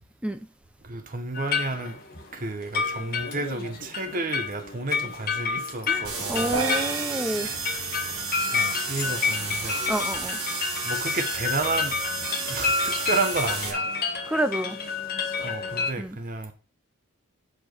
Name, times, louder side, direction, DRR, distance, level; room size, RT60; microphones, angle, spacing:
voice 1, 0.8-2.0 2.3-6.6 7.4-8.1 8.5-9.8 10.8-12.0 12.5-13.9 15.4-16.5, right 3 dB, 40° right, 1.0 m, -31 dB
sound 1, 1.3-15.9, left 5 dB, 45° left, 1.8 m, -30 dB
voice 2, 5.9-7.5 9.9-10.4 14.3-14.8 16.0-16.2, right 1 dB, 5° right, 0.6 m, -29 dB
sound 2, 6.0-13.7, right 5 dB, 90° right, 1.9 m, -33 dB
sound 3, 6.5-9.0, right 5 dB, 65° right, 0.9 m, -34 dB
7.9 x 4.6 x 4.5 m
head